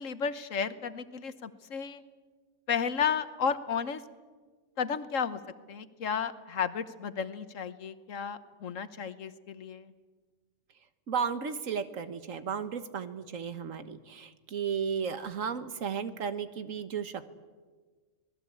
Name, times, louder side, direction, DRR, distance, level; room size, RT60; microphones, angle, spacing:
voice 1, 0.0-2.0 2.7-4.0 4.8-5.4 5.7-9.9, left 6 dB, 85° left, 12 dB, 1.5 m, -33 dB
voice 2, 11.1-17.2, right 6 dB, 90° right, 11 dB, 1.6 m, -34 dB
26.0 x 19.5 x 8.6 m, 1.4 s
omnidirectional pair, 1.3 m